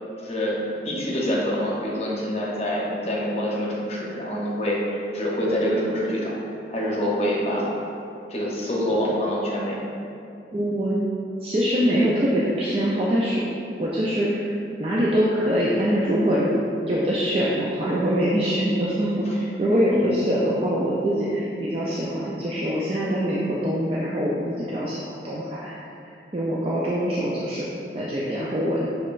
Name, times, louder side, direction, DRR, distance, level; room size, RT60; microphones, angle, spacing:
voice 1, 0.2-0.6 0.8-6.3 6.7-7.7 8.3-9.8 19.2-19.3 19.9-20.1, equal, 35° left, -4 dB, 0.8 m, -26 dB
voice 2, 10.5-11.0 11.4-13.4 13.8-14.5 14.8-16.6 16.9-25.7 26.3-27.7 27.9-28.9, equal, 30° right, -7 dB, 0.4 m, -23 dB
6.4 x 3.2 x 2.5 m, 2.6 s
head